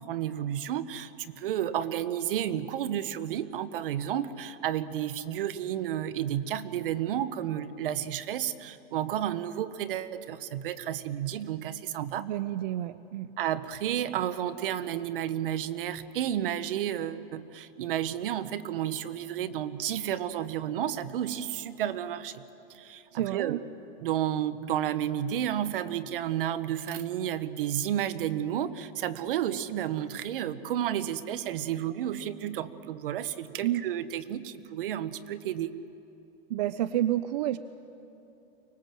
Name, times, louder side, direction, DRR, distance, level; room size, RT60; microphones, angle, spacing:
voice 1, 0.0-12.3 13.4-22.4 22.7-23.6 24.0-35.7, right 10 dB, 60° right, 14 dB, 1.1 m, -31 dB
voice 2, 12.2-13.3 23.1-23.6 33.6-33.8 36.5-37.6, right 13 dB, 45° right, 14 dB, 0.5 m, -29 dB
24.5 x 19.5 x 7.6 m, 2.9 s
supercardioid pair, 160°, 30 cm